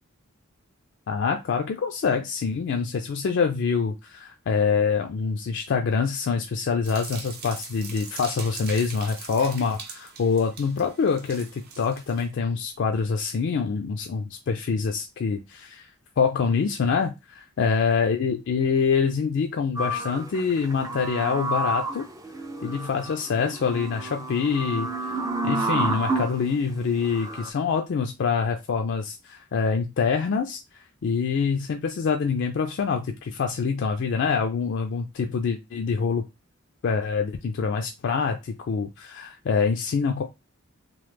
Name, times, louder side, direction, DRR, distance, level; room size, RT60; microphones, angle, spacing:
voice 1, 1.1-15.9 16.2-22.0 22.6-36.2 36.8-40.2, left 5 dB, 60° left, 4 dB, 0.3 m, -25 dB
sound 1, 6.8-12.3, right 5 dB, 45° right, 0.7 m, -41 dB
sound 2, 19.8-26.4 27.0-27.5, right 2 dB, 15° right, 0.3 m, -30 dB
3.1 x 2.0 x 3.2 m, 0.24 s
head